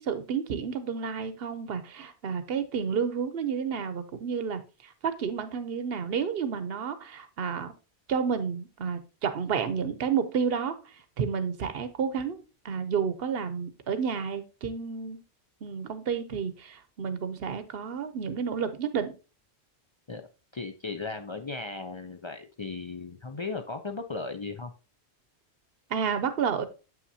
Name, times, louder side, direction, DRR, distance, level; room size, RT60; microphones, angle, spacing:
voice 1, 0.0-7.7 8.1-12.4 12.6-15.2 15.6-19.1 25.9-26.6, right 6 dB, 60° right, 0.9 m, -31 dB
voice 2, 20.5-24.7, left 3 dB, 40° left, 0.4 m, -36 dB
7.7 x 5.8 x 2.7 m
omnidirectional pair, 1.2 m